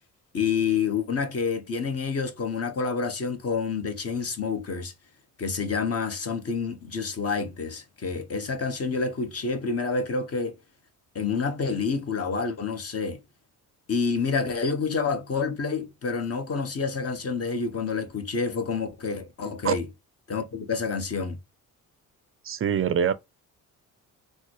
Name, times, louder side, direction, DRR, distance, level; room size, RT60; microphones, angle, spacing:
voice 1, 0.3-4.9 5.4-10.6 11.1-13.2 13.9-19.9 20.3-21.4, left 5 dB, 40° left, 0.9 m, -28 dB
voice 2, 22.4-23.1, right 8 dB, 35° right, 0.4 m, -24 dB
3.8 x 2.1 x 3.1 m
supercardioid pair, 70°, 38 cm